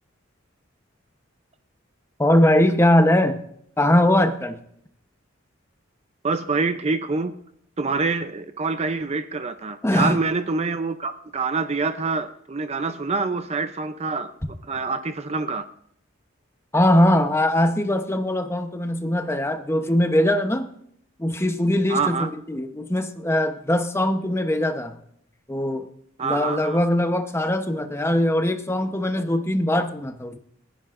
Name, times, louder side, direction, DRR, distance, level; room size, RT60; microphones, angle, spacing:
voice 1, 2.2-3.4 3.8-4.6 9.8-10.2 16.7-20.7 21.2-25.0 25.5-25.9 26.2-30.4, left 1 dB, 15° left, 7 dB, 0.9 m, -21 dB
voice 2, 6.2-7.3 7.8-14.3 14.7-15.6 21.9-22.3 26.2-26.8, right 4 dB, 30° right, 9 dB, 0.5 m, -26 dB
29.5 x 10.0 x 2.5 m, 0.69 s
head